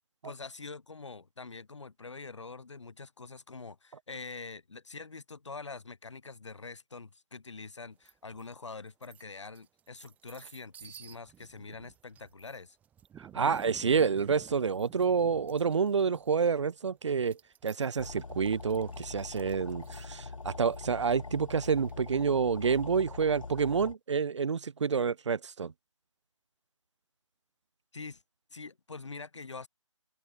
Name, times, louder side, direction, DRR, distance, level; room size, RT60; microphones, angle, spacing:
voice 1, 0.2-12.8 27.9-28.2 28.5-29.7, left 4 dB, 65° left, 4.0 m, -45 dB
sound 1, 8.1-8.5 8.9-22.1, right 9 dB, 10° right, 2.4 m, -54 dB
voice 2, 13.3-25.7, right 6 dB, 65° right, 0.5 m, -28 dB
sound 2, 18.0-23.9, left 4 dB, 85° left, 0.6 m, -43 dB
open air
figure-of-eight pair, 145°, 16 cm